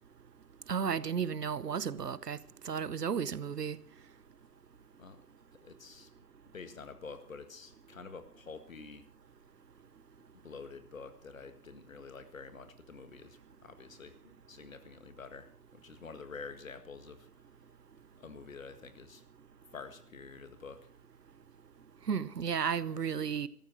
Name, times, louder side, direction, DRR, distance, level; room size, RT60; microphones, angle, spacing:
voice 1, 0.7-2.4 2.6-3.8 22.1-23.5, right 7 dB, 90° right, 1.0 m, -33 dB
voice 2, 5.6-6.1 6.5-9.1 10.4-17.3 18.2-19.2 19.7-20.8, left 4 dB, 60° left, 1.9 m, -48 dB
13.5 x 10.0 x 6.1 m
hypercardioid pair, 165°, 46 cm